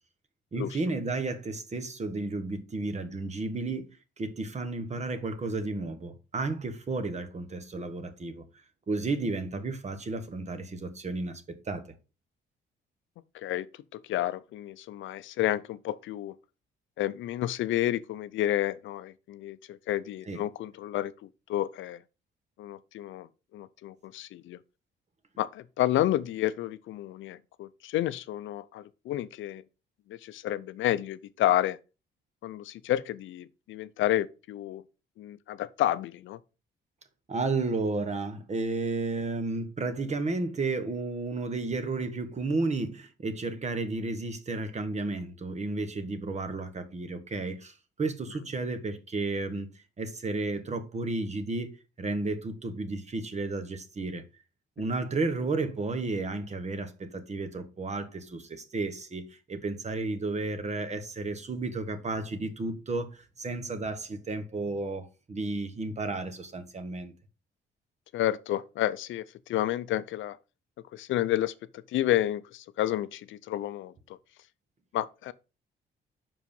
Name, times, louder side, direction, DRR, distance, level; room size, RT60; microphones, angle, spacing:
voice 1, 0.5-3.9 4.2-8.4 8.9-11.8 20.3-20.4 37.3-49.7 50.0-51.7 52.0-54.2 54.8-67.1, right 3 dB, 35° right, 1.3 m, -32 dB
voice 2, 13.3-16.4 17.0-22.0 22.6-23.3 23.5-24.6 25.4-29.6 30.1-31.8 32.4-34.8 35.2-36.4 68.1-70.4 70.9-74.2 74.9-75.3, left 13 dB, 75° left, 0.5 m, -30 dB
5.6 x 4.8 x 5.3 m
cardioid pair, 90°, 20 cm